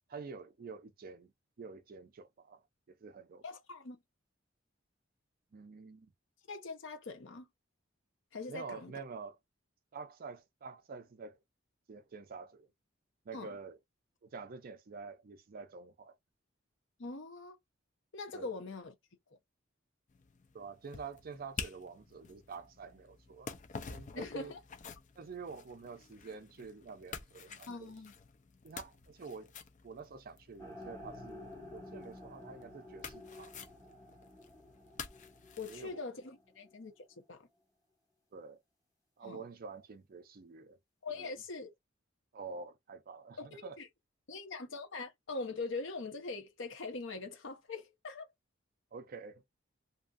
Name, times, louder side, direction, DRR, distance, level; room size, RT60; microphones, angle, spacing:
voice 1, 0.1-1.3 1.6-2.6 3.0-3.4 5.5-6.1 8.5-9.4 9.9-11.4 11.9-12.7 13.3-13.8 14.2-16.1 18.3-18.5 20.5-23.5 23.9-24.5 25.2-27.9 28.6-29.5 29.8-33.6 35.7-36.0 38.3-38.6 39.2-40.8 41.2-41.3 42.3-43.8 48.9-49.5, right 4 dB, 50° right, 0.4 m, -47 dB
voice 2, 3.4-4.0 6.5-7.5 8.3-8.9 13.3-13.5 17.0-17.6 18.1-18.9 24.1-24.6 27.7-28.1 35.6-37.5 39.2-39.4 41.0-41.7 43.4-43.9 44.3-48.3, left 3 dB, 70° left, 0.8 m, -42 dB
sound 1, 20.1-35.9, left 5 dB, 40° left, 0.5 m, -50 dB
sound 2, 30.6-36.7, left 2 dB, 15° left, 1.3 m, -51 dB
2.7 x 2.5 x 2.3 m
head